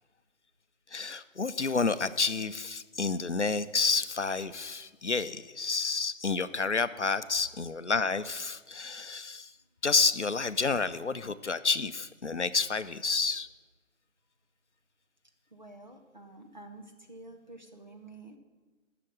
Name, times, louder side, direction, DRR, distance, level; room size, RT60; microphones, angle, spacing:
voice 1, 0.9-9.5 9.8-13.5, left 4 dB, 60° left, 14 dB, 0.6 m, -29 dB
voice 2, 15.5-18.4, right 2 dB, 35° right, 3 dB, 1.1 m, -49 dB
9.9 x 6.7 x 8.7 m, 1.3 s
figure-of-eight pair, 170°, 40 cm